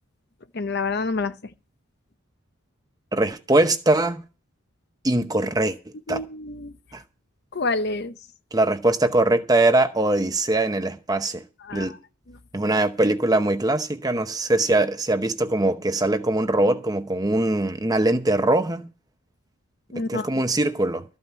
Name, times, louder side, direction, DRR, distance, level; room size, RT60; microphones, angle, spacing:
voice 1, 0.5-1.5 6.1-6.7 7.5-8.2 11.6-12.0 12.3-12.4 19.9-20.3, left 3 dB, 50° left, 0.7 m, -28 dB
voice 2, 3.1-4.2 5.0-5.8 6.1-6.2 6.9-7.0 8.5-11.4 11.7-11.9 12.5-18.8 20.0-21.0, right 2 dB, 15° right, 0.8 m, -22 dB
13.5 x 5.7 x 8.1 m
head